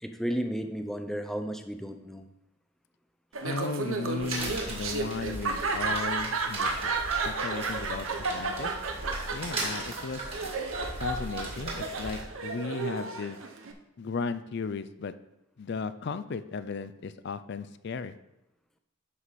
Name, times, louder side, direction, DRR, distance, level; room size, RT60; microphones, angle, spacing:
voice 1, 0.0-2.3, equal, ahead, 6 dB, 0.5 m, -33 dB
Laughter, 3.3-13.7, right 3 dB, 85° right, 0.9 m, -33 dB
voice 2, 3.4-6.9 7.3-8.7 9.3-10.3 11.0-13.4 14.0-15.1 15.6-18.1, left 4 dB, 55° left, 13 dB, 0.4 m, -35 dB
sound 1, 4.2-12.2, right 2 dB, 30° right, 2.0 m, -38 dB
11.0 x 4.8 x 4.1 m, 0.88 s
head